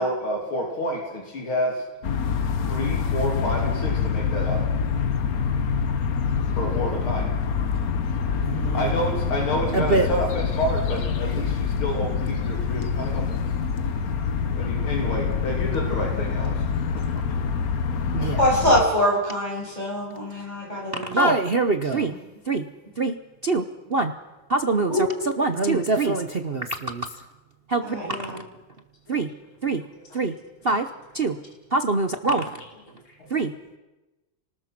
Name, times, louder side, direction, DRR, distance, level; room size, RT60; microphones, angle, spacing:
voice 1, 0.0-1.8 2.7-4.6 6.6-7.3 8.7-13.4 14.6-16.6 17.0-17.1 18.2-18.4 33.2-33.3, equal, 80° left, 0 dB, 3.8 m, -29 dB
sound 1, 2.0-18.8, left 6 dB, 50° left, 1.4 m, -26 dB
voice 2, 8.4-8.9 9.7-10.1 18.1-18.4 20.9-22.1 22.5-22.7 23.0-23.2 23.4-23.6 23.9-24.1 24.5-25.1 25.4-27.1 27.7-28.4 29.1-29.3 29.6-29.8 30.1-30.3 30.6-30.9 31.1-31.4 31.7-32.6 33.3-33.5, right 3 dB, 50° right, 7 dB, 0.7 m, -24 dB
voice 3, 18.4-21.1 24.9-25.0 27.8-28.4, equal, 20° left, -3 dB, 7.0 m, -23 dB
29.0 x 19.5 x 6.0 m, 1.1 s
omnidirectional pair, 2.3 m